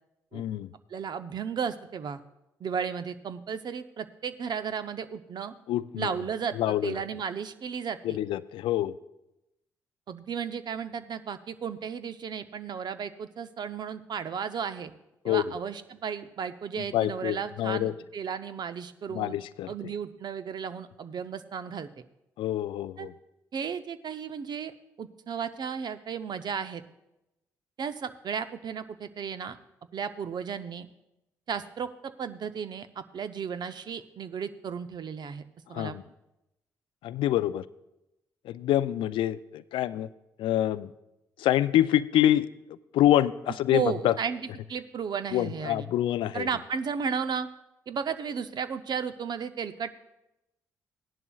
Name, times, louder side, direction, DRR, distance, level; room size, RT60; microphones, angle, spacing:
voice 1, 0.3-0.7 5.7-6.1 6.6-6.9 8.0-8.9 15.2-15.4 16.9-17.9 19.1-19.7 22.4-23.1 35.7-36.0 37.0-37.6 38.5-40.1 40.4-40.9 41.4-42.5 42.9-44.1 45.3-46.5, left 13 dB, 65° left, 16 dB, 0.4 m, -26 dB
voice 2, 0.9-2.2 2.6-5.5 6.0-8.2 10.1-14.9 15.2-19.4 19.7-21.9 23.0-23.1 23.5-24.7 25.0-26.8 27.8-29.6 29.9-30.9 31.5-35.4 35.7-36.0 43.7-45.9 46.3-47.5 47.9-50.0, right 6 dB, 50° right, 11 dB, 0.7 m, -34 dB
17.0 x 11.0 x 2.4 m, 0.93 s
hypercardioid pair, 45°, 9 cm